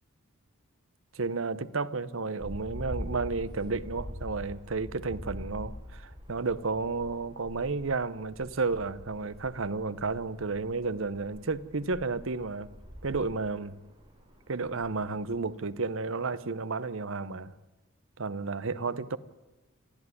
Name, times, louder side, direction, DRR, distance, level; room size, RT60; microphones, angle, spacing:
voice 1, 1.1-12.7 13.0-13.8 14.5-17.5 18.2-19.2, right 4 dB, 65° right, 0.8 m, -32 dB
sound 1, 2.4-15.6, equal, 20° right, 4.3 m, -44 dB
27.0 x 13.5 x 9.7 m
head